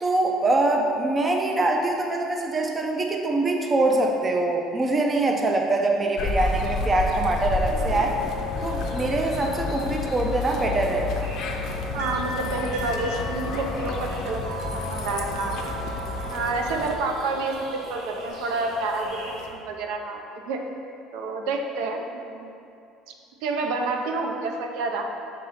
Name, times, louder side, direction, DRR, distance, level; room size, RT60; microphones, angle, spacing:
voice 1, 0.0-8.2 8.6-11.3, right 2 dB, 15° right, 2 dB, 0.4 m, -24 dB
sound 1, 6.2-17.0, left 3 dB, 40° left, 0.5 m, -30 dB
sound 2, 7.7-19.5, left 2 dB, 50° right, 1.1 m, -36 dB
voice 2, 11.9-14.4 14.9-15.7 16.3-20.6 21.1-22.5 23.4-25.1, right 3 dB, 75° right, 3 dB, 0.7 m, -29 dB
5.5 x 3.7 x 5.7 m, 2.6 s
cardioid pair, 175°, 0 cm